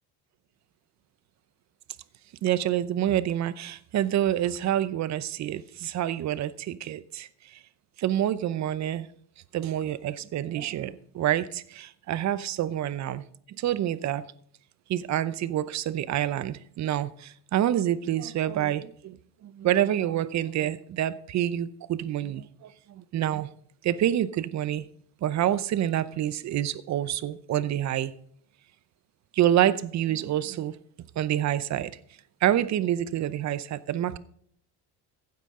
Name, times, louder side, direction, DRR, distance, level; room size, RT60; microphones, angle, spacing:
voice 1, 2.4-7.3 8.0-9.1 9.5-13.2 13.6-14.2 14.9-19.2 19.4-23.5 23.8-24.9 25.2-28.1 29.3-30.8 31.2-31.9 32.4-34.2, right 11 dB, 40° right, 0.7 m, -27 dB
15.5 x 9.7 x 3.7 m
cardioid pair, 140°, 41 cm